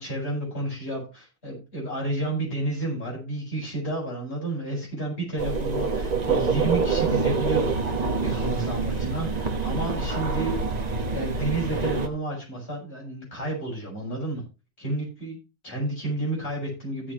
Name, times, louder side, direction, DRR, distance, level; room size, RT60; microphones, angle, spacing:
voice 1, 0.0-10.5 11.1-14.4 14.8-15.4 15.6-17.1, right 2 dB, 25° left, -4 dB, 7.5 m, -31 dB
sound 1, 5.4-12.1, right 4 dB, 30° right, 0.8 m, -26 dB
16.5 x 7.6 x 2.9 m, 0.30 s
omnidirectional pair, 2.4 m